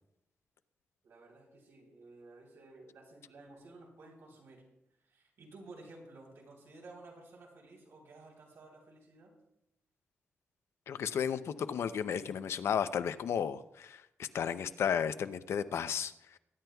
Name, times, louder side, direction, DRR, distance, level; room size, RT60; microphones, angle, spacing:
voice 1, 1.0-4.6 5.0-9.3, right 2 dB, 80° right, -1 dB, 3.5 m, -54 dB
voice 2, 10.9-16.4, left 8 dB, 75° left, 12 dB, 0.5 m, -34 dB
21.0 x 10.5 x 2.3 m, 0.84 s
wide cardioid pair, 170°, 4 cm